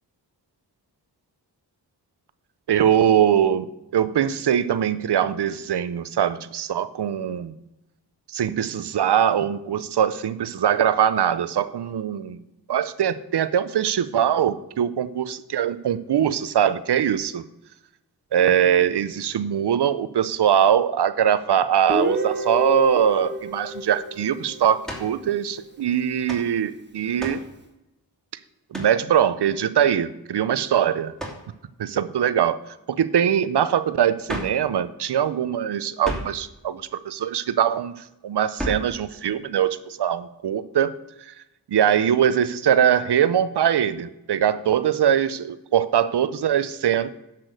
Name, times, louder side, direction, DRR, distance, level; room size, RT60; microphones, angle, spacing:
voice 1, 2.7-7.5 8.3-12.4 12.7-17.4 18.3-27.4 28.7-31.1 31.8-32.6 32.9-37.9 38.2-40.9 41.3-41.4 41.7-47.1, right 9 dB, 70° right, 15 dB, 0.8 m, -22 dB
Guitar, 21.9-25.7, right 1 dB, 25° right, 1.3 m, -30 dB
sound 1, 24.8-25.2 26.3-26.5 27.2-27.5 28.7-29.0 31.2-31.5 34.3-34.6 36.0-36.4 38.6-38.9, equal, ahead, 2.7 m, -32 dB
10.5 x 6.1 x 6.5 m, 0.92 s
cardioid pair, 65°, 41 cm